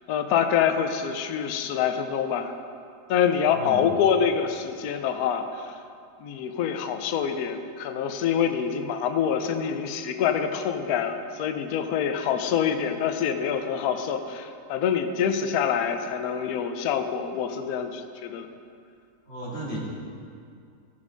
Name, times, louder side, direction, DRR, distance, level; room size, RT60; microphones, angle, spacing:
voice 1, 0.1-2.5 3.1-5.7 6.2-18.5, left 8 dB, 65° left, 7 dB, 1.1 m, -26 dB
voice 2, 3.5-3.8 19.3-19.8, right 1 dB, 35° left, -6 dB, 2.7 m, -34 dB
14.0 x 7.3 x 5.1 m, 2.4 s
omnidirectional pair, 1.9 m